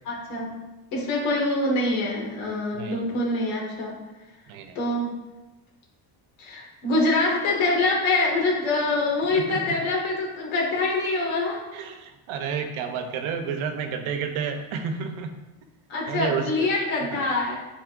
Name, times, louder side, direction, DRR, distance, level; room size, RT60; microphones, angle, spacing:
voice 1, 0.1-0.6 0.9-3.9 4.8-5.1 6.4-11.6 15.9-17.6, left 2 dB, 70° left, -1 dB, 2.1 m, -25 dB
voice 2, 2.7-3.1 4.5-4.8 9.3-9.6 11.7-15.3 16.1-16.7 17.1-17.3, right 6 dB, 75° right, 6 dB, 1.0 m, -31 dB
10.5 x 4.4 x 2.6 m, 1.0 s
cardioid pair, 175°, 49 cm